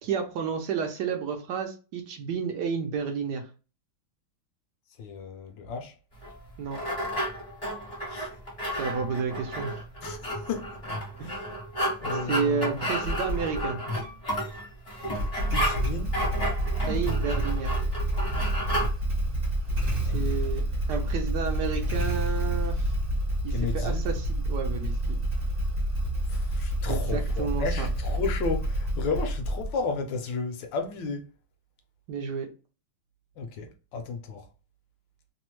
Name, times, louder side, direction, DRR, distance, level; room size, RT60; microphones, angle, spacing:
voice 1, 0.0-3.4 6.6-6.8 8.7-9.8 11.2-11.4 12.2-13.8 16.9-17.8 20.1-20.6 20.9-22.9 23.4-25.2 26.9-27.9 32.1-32.5, right 6 dB, 75° right, 1.0 m, -31 dB
voice 2, 5.0-5.9 8.1-8.3 10.0-10.7 11.2-11.6 12.0-12.7 15.5-16.2 20.0-20.5 23.5-24.0 26.3-31.2 33.4-34.5, left 4 dB, 70° left, 1.3 m, -33 dB
sound 1, 6.2-18.9, equal, 30° left, 0.6 m, -32 dB
Motorcycle / Engine starting, 13.0-13.7 15.0-29.9, right 1 dB, 45° right, 0.7 m, -28 dB
3.3 x 2.0 x 2.9 m
omnidirectional pair, 2.3 m